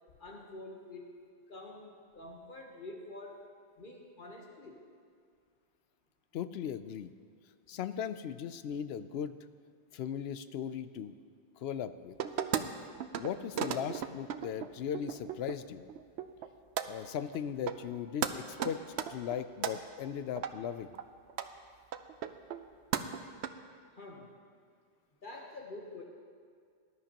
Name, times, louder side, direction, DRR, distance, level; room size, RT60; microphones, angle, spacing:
voice 1, 0.2-1.2 1.5-3.4 3.8-4.8 24.0-24.4 25.2-26.0, left 2 dB, 55° left, -1 dB, 1.3 m, -47 dB
voice 2, 6.3-7.1 7.7-9.4 9.9-11.2 11.6-12.2 13.2-15.8 16.9-18.8 19.1-20.9, left 8 dB, 75° left, 12 dB, 0.8 m, -38 dB
sound 1, 12.2-12.6 13.0-13.3 13.5-15.5 15.9-16.5 16.8-16.9 17.3-17.4 17.7-18.0 18.2-18.3 18.6-19.7 20.4-20.5 20.9-21.0 21.3-21.5 21.9-22.7 22.9-23.5, right 9 dB, 85° right, 0.9 m, -35 dB
19.0 x 11.5 x 2.9 m, 2.1 s
omnidirectional pair, 1.1 m